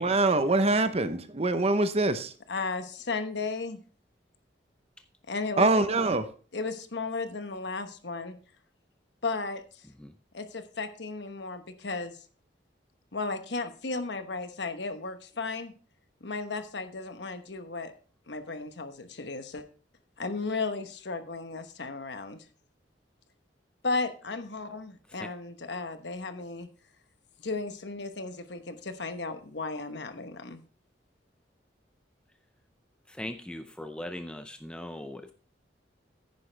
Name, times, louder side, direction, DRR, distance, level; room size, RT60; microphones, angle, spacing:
voice 1, 0.0-2.3 5.6-6.3, right 2 dB, 35° right, 11 dB, 0.8 m, -24 dB
voice 2, 2.5-3.8 5.3-5.7 6.5-8.4 9.2-9.8 10.3-12.2 13.1-15.7 16.2-17.9 18.3-19.6 20.2-22.4 23.8-26.7 27.4-30.6, left 3 dB, 65° left, 9 dB, 1.1 m, -34 dB
voice 3, 33.1-35.3, left 1 dB, 5° left, 8 dB, 0.5 m, -39 dB
10.0 x 9.6 x 3.3 m, 0.39 s
head